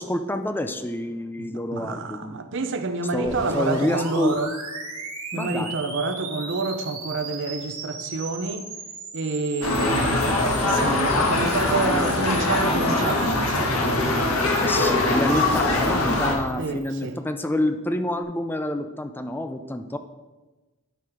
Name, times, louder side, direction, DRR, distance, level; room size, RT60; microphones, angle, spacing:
voice 1, 0.0-2.5 3.1-4.4 5.3-5.8 14.6-20.0, left 1 dB, 10° left, 0.4 m, -27 dB
voice 2, 1.4-4.5 5.3-8.7 9.1-14.3 14.9-15.0 16.6-17.2, right 3 dB, 60° right, 0.7 m, -28 dB
sound 1, 3.2-17.1, right 4 dB, 90° right, 2.3 m, -38 dB
sound 2, 9.6-16.3, left 2 dB, 90° left, 1.7 m, -22 dB
12.0 x 4.8 x 4.8 m
head